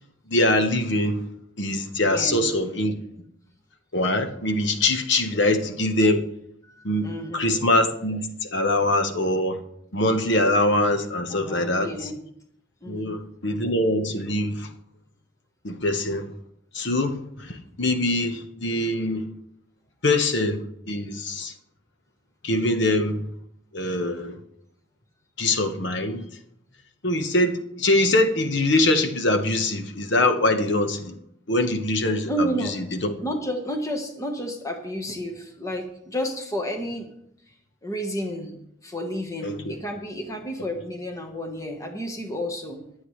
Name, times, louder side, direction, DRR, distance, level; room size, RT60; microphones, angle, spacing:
voice 1, 0.3-1.3 1.6-2.9 3.9-6.2 6.8-9.6 9.9-12.1 12.9-14.7 15.6-16.3 16.7-19.3 20.0-21.5 22.4-23.3 23.7-24.4 25.4-26.4 27.0-31.1 31.5-33.2 39.4-39.7, left 1 dB, 60° left, 1.2 m, -23 dB
voice 2, 2.0-2.4 5.3-5.6 6.7-7.6 11.3-12.2 12.8-13.2 32.3-32.7 33.2-37.1 37.5-37.6 37.8-42.8, equal, 15° left, 1.3 m, -31 dB
23.0 x 7.9 x 3.2 m
head